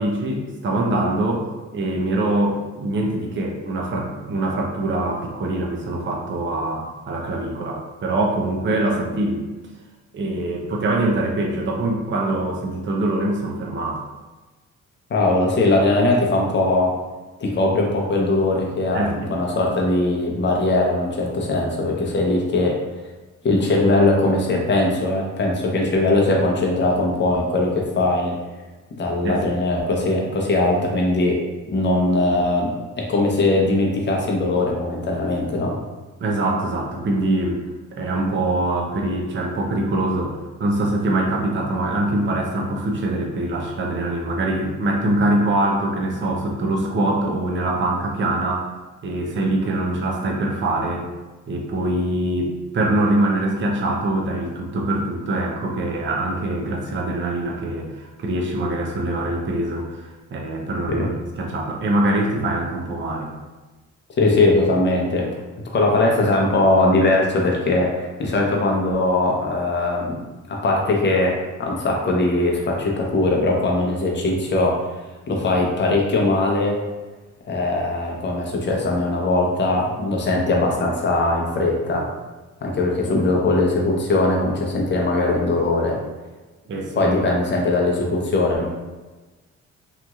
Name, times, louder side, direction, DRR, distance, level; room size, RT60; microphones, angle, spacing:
voice 1, 0.0-9.4 10.1-14.1 18.9-19.3 29.2-29.4 36.2-37.6 37.9-48.7 49.0-51.1 51.5-63.3 86.7-87.0, right 1 dB, 40° right, 0 dB, 0.6 m, -23 dB
voice 2, 15.1-16.9 17.4-22.8 23.4-28.4 29.0-31.4 31.7-32.7 33.0-35.8 60.9-61.1 64.2-65.3 65.7-70.2 70.5-71.3 71.6-74.8 75.3-76.8 77.5-82.1 82.6-86.0 86.9-88.7, left 2 dB, 35° left, -1 dB, 0.7 m, -20 dB
2.9 x 2.6 x 2.3 m, 1.2 s
cardioid pair, 90°, 30 cm